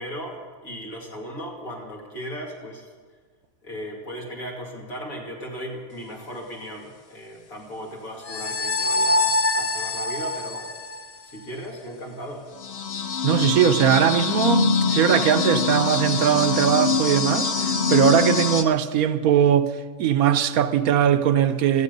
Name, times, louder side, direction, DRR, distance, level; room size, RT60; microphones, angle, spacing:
voice 1, 0.0-2.9 3.6-10.7 11.2-12.5, equal, 70° left, 2.9 m, -36 dB
sound 1, 8.2-11.4 12.6-18.6, left 4 dB, 50° left, 1.0 m, -24 dB
voice 2, 13.2-19.7 20.0-21.8, right 9 dB, 85° right, 1.2 m, -20 dB
17.5 x 14.0 x 5.3 m
omnidirectional pair, 1.5 m